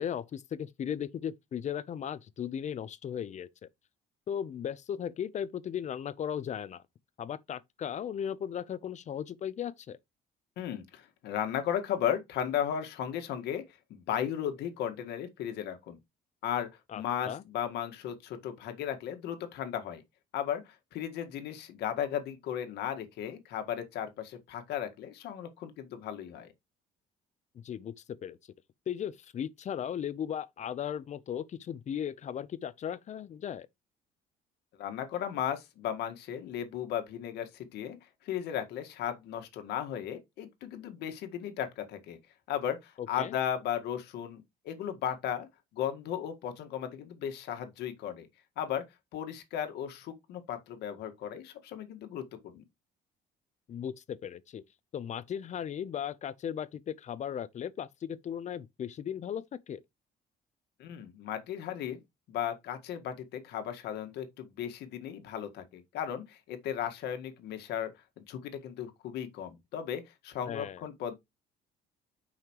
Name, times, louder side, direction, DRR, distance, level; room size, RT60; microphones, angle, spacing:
voice 1, 0.0-3.7 4.3-6.8 7.2-10.0 16.9-17.4 27.6-28.4 28.9-33.7 43.0-43.3 53.7-54.6 54.9-59.8 70.4-70.8, left 9 dB, 45° left, 0.7 m, -37 dB
voice 2, 10.6-13.6 13.9-16.0 16.4-16.7 16.9-20.0 20.3-26.5 34.8-42.2 42.5-45.5 45.7-48.3 48.6-48.9 49.1-52.6 60.8-62.0 62.3-71.1, left 9 dB, 80° left, 1.8 m, -35 dB
9.0 x 5.7 x 3.1 m
cardioid pair, 110°, 17 cm